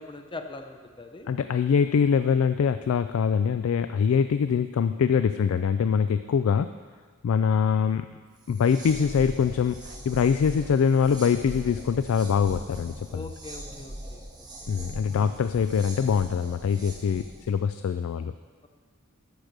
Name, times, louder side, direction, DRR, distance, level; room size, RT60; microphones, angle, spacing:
voice 1, 0.0-1.3 13.1-14.2 15.1-15.3, left 3 dB, 25° left, 6 dB, 0.6 m, -41 dB
voice 2, 1.3-6.7 7.2-8.1 8.5-13.3 14.7-18.3, left 6 dB, 65° left, 11 dB, 0.3 m, -24 dB
sound 1, 8.4-17.5, right 1 dB, 20° right, 1.4 m, -41 dB
12.5 x 5.1 x 6.5 m, 1.5 s
head